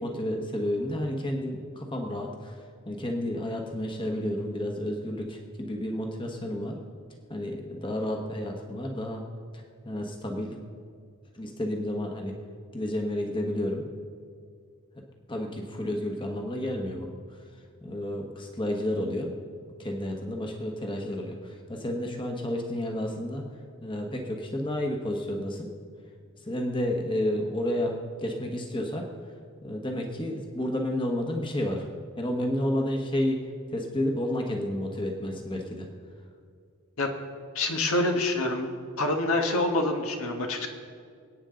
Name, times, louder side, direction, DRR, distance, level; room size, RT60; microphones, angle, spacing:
voice 1, 0.0-2.6 2.9-6.8 7.3-9.2 9.5-10.6 11.3-12.3 12.7-13.8 15.3-17.1 17.8-19.3 19.8-23.4 23.8-25.7 26.5-29.0 29.6-31.9 32.2-35.9, left 1 dB, 20° left, 2 dB, 1.2 m, -31 dB
voice 2, 37.5-38.7 39.0-40.7, left 2 dB, 75° left, 3 dB, 1.4 m, -26 dB
27.0 x 9.0 x 3.8 m, 2.2 s
head